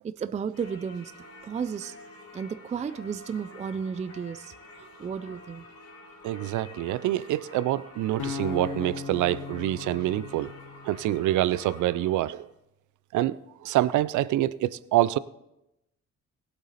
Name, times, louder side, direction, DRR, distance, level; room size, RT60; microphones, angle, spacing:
voice 1, 0.0-1.1 1.4-2.0 2.3-5.6, right 6 dB, 25° right, 0.4 m, -33 dB
Singing / Church bell, 0.5-12.4, left 2 dB, 55° left, 3.7 m, -49 dB
voice 2, 6.2-10.5 10.8-12.5 13.1-15.2, right 14 dB, 75° right, 0.5 m, -26 dB
sound 1, 8.2-11.4, left 5 dB, 80° left, 1.5 m, -37 dB
17.5 x 8.1 x 4.1 m
cardioid pair, 90°, 30 cm